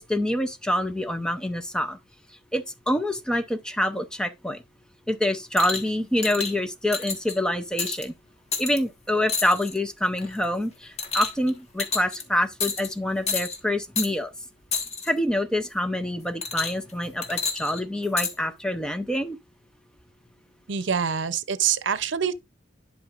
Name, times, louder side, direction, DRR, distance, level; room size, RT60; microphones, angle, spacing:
voice 1, 0.0-2.0 2.5-4.6 5.1-8.1 8.6-14.3 15.1-19.4, left 1 dB, 5° left, 0.6 m, -26 dB
sound 1, 5.6-5.9 6.2-6.5 6.9-7.3 7.8-8.0 8.5-8.8 9.3-9.8 10.2-10.4 11.0-11.5 11.8-12.2 12.6-12.9 13.3-13.6 14.0-14.1 14.7-15.1 16.4-16.9 17.2-18.3 19.1-19.2, left 5 dB, 35° left, 1.4 m, -29 dB
voice 2, 20.7-22.3, right 7 dB, 75° right, 0.7 m, -25 dB
11.0 x 5.4 x 2.5 m
head